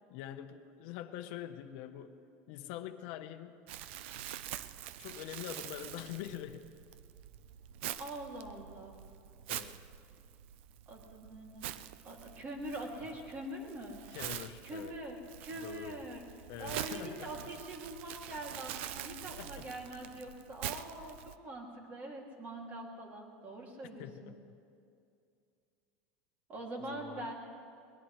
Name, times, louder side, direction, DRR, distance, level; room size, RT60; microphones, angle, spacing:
voice 1, 0.1-3.6 5.0-6.7 9.5-9.8 14.1-14.9 15.6-16.0 16.5-17.3 19.3-19.7 24.0-24.4 26.8-27.3, left 11 dB, 60° left, 7 dB, 0.9 m, -45 dB
Crumpling crinkling, 3.7-21.3, right 12 dB, 75° right, 0.6 m, -45 dB
voice 2, 8.0-9.0 10.9-11.7 12.0-14.0 14.6-16.2 16.6-24.3 26.5-27.3, right 1 dB, 25° right, 1 dB, 2.5 m, -44 dB
22.0 x 20.0 x 3.2 m, 2.4 s
supercardioid pair, 155°, 6 cm